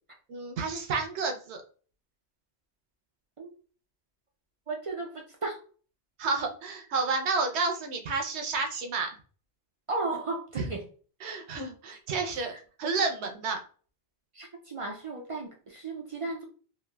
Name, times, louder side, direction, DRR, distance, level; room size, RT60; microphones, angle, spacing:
voice 1, 0.3-1.6 6.2-9.2 10.6-10.7 11.2-12.5 12.8-13.6, right 4 dB, 75° right, 3 dB, 0.9 m, -30 dB
voice 2, 4.7-5.6 9.9-10.9 12.5-12.6 14.3-16.4, right 3 dB, 55° right, 0 dB, 0.3 m, -35 dB
3.2 x 2.4 x 2.2 m, 0.40 s
omnidirectional pair, 1.1 m